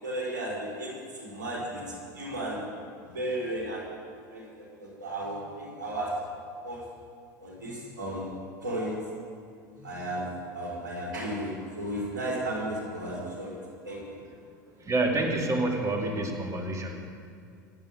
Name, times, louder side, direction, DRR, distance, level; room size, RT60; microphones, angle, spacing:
voice 1, 0.0-1.8 2.1-2.6 3.1-3.8 4.3-6.1 6.6-6.8 7.4-8.2 8.6-8.9 9.7-10.3 10.5-13.6 13.8-14.2, right 1 dB, 80° right, -5 dB, 5.2 m, -34 dB
voice 2, 14.8-17.0, right 2 dB, 30° right, 1 dB, 2.6 m, -28 dB
25.5 x 9.0 x 5.4 m, 2.3 s
hypercardioid pair, 80°, 10 cm